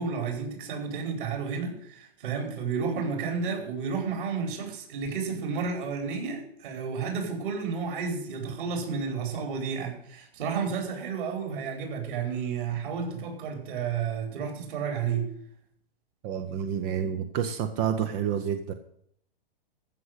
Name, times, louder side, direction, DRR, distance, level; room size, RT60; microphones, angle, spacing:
voice 1, 0.0-15.3, right 5 dB, 60° right, 3 dB, 4.8 m, -31 dB
voice 2, 16.2-18.7, right 8 dB, 15° right, 9 dB, 0.4 m, -29 dB
14.5 x 6.4 x 7.9 m, 0.68 s
hypercardioid pair, 165°, 30 cm